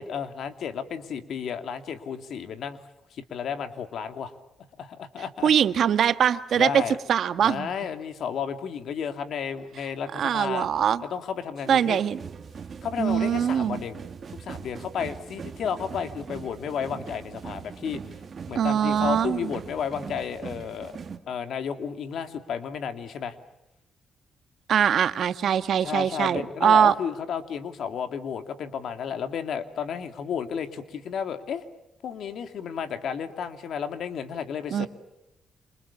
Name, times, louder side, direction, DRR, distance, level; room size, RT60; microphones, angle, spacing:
voice 1, 0.0-2.8 3.1-4.3 4.8-5.5 6.5-7.0 7.4-10.7 11.0-12.0 12.8-14.0 14.3-18.2 18.5-20.9 21.3-23.3 25.8-31.6 32.0-34.9, left 7 dB, 70° left, 8 dB, 2.7 m, -32 dB
voice 2, 5.4-6.8 7.1-7.7 10.1-11.0 11.7-12.2 13.0-13.8 18.5-19.5 24.7-26.9 34.7-34.9, right 8 dB, 65° right, 11 dB, 1.5 m, -22 dB
sound 1, 11.6-21.2, right 6 dB, 50° right, 2.4 m, -41 dB
28.5 x 28.0 x 7.3 m, 0.89 s
cardioid pair, 85°, 0 cm